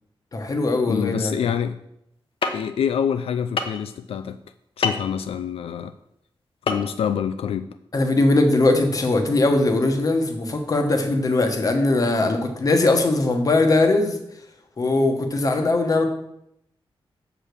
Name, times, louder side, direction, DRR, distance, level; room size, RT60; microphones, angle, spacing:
voice 1, 0.3-1.3 7.9-14.2 14.8-16.0, left 2 dB, 40° left, 5 dB, 1.0 m, -20 dB
voice 2, 0.9-1.8 2.5-4.4 4.8-5.9 6.7-7.7, left 8 dB, 85° left, 10 dB, 0.4 m, -26 dB
sound 1, 2.4-2.5 3.6-3.8 4.8-5.0 6.7-6.8 7.1-7.2, left 4 dB, 70° left, 0.9 m, -23 dB
7.1 x 4.9 x 6.6 m, 0.78 s
wide cardioid pair, 180°, 10 cm